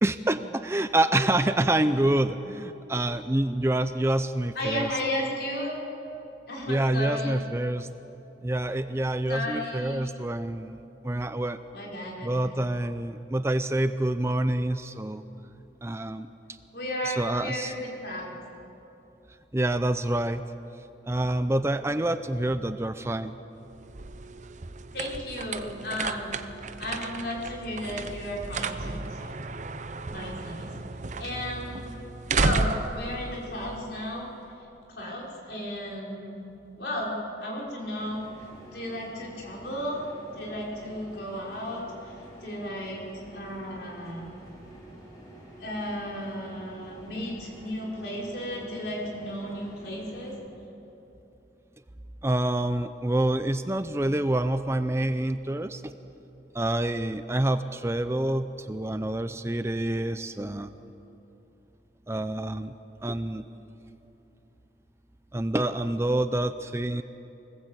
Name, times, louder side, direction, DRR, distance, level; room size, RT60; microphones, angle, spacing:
voice 1, 0.0-4.9 6.7-7.9 8.4-11.6 12.2-15.2 15.8-16.3 17.0-17.7 19.5-20.4 21.1-23.3 52.2-55.9 56.5-60.7 62.1-62.7 63.0-63.5 65.3-67.0, right 1 dB, 15° right, 10 dB, 0.5 m, -27 dB
voice 2, 4.5-5.8 6.5-7.4 9.3-10.2 11.7-12.3 16.7-18.3 24.9-26.3 26.8-29.4 30.1-30.7 31.2-31.9 32.4-34.3 34.9-36.4 36.8-37.2 37.4-38.2 38.7-40.0 40.3-41.9 42.4-44.3 45.6-50.3, left 1 dB, 65° left, -2 dB, 5.2 m, -34 dB
sound 1, 23.6-34.3, right 3 dB, 40° right, 0.8 m, -33 dB
sound 2, 38.0-50.3, equal, 20° left, 5.1 m, -49 dB
24.5 x 19.5 x 8.2 m, 3.0 s
head